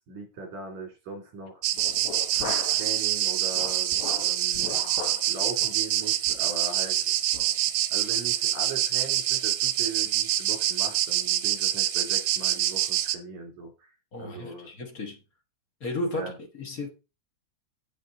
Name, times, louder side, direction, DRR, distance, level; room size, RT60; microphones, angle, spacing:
voice 1, 0.1-1.6 2.3-4.7 5.3-7.1 7.9-13.9 14.2-14.7 16.1-16.4, right 3 dB, 70° right, 4.5 m, -39 dB
sound 1, 1.6-13.2, right 12 dB, 85° right, 2.3 m, -26 dB
sound 2, 1.8-2.9 3.2-5.3 5.6-5.8 6.3-6.5 6.9-7.0 7.3-7.5, left 7 dB, 70° left, 2.3 m, -38 dB
voice 2, 14.1-15.2 15.8-16.9, left 2 dB, 40° left, 1.3 m, -34 dB
8.1 x 8.1 x 3.9 m
omnidirectional pair, 3.6 m